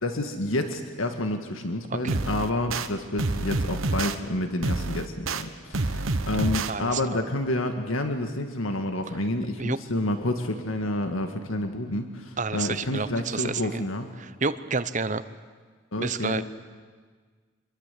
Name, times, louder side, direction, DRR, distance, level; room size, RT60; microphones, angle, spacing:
voice 1, 0.0-14.1 15.9-16.4, left 1 dB, 80° left, 6 dB, 1.8 m, -29 dB
sound 1, 2.1-2.9 3.2-4.2 4.6-5.4 5.7-6.7, right 3 dB, 85° right, 1.2 m, -27 dB
voice 2, 6.7-7.0 9.6-9.8 12.4-13.8 14.2-15.2 16.0-16.4, right 4 dB, 35° right, 13 dB, 0.9 m, -29 dB
26.0 x 22.0 x 8.4 m, 1.5 s
head